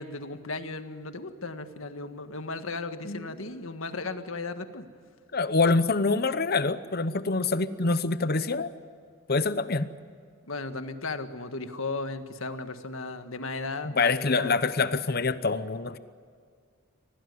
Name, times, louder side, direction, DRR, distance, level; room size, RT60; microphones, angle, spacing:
voice 1, 0.0-4.9 10.5-14.6, left 3 dB, 70° left, 8 dB, 1.7 m, -35 dB
voice 2, 5.3-8.7 9.3-9.9 14.0-16.0, left 3 dB, 45° left, 13 dB, 0.9 m, -25 dB
25.5 x 18.0 x 9.6 m, 2.1 s
head